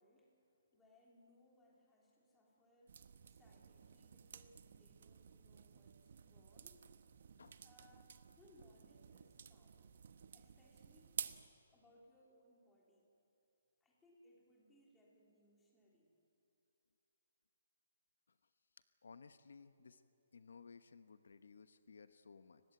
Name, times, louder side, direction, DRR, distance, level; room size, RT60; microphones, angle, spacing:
voice 1, 0.0-3.0 3.3-6.8 7.6-9.9 10.3-11.2 11.7-13.1 13.8-16.1, left 1 dB, 5° left, -3 dB, 3.4 m, -69 dB
sound 1, 2.9-11.5, right 7 dB, 50° right, 1.0 m, -52 dB
voice 2, 19.0-20.0 20.3-22.6, left 5 dB, 80° left, 11 dB, 1.1 m, -59 dB
30.0 x 16.0 x 9.4 m, 2.7 s
hypercardioid pair, 175°, 0 cm